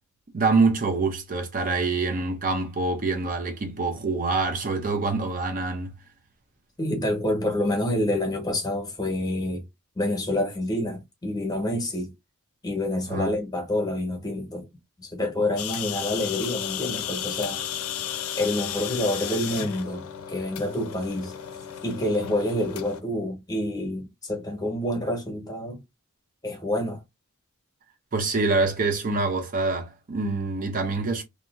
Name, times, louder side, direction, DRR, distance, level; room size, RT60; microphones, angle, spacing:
voice 1, 0.3-5.9 13.1-13.3 28.1-31.2, right 3 dB, 40° right, 0.5 m, -25 dB
voice 2, 6.8-9.6 9.9-12.1 12.6-14.7 15.0-17.6 18.4-20.0 20.3-21.3 21.8-25.8 26.4-27.0, left 1 dB, 20° left, 1.1 m, -27 dB
sound 1, 15.6-23.0, left 10 dB, 75° left, 0.5 m, -34 dB
2.7 x 2.6 x 2.4 m
head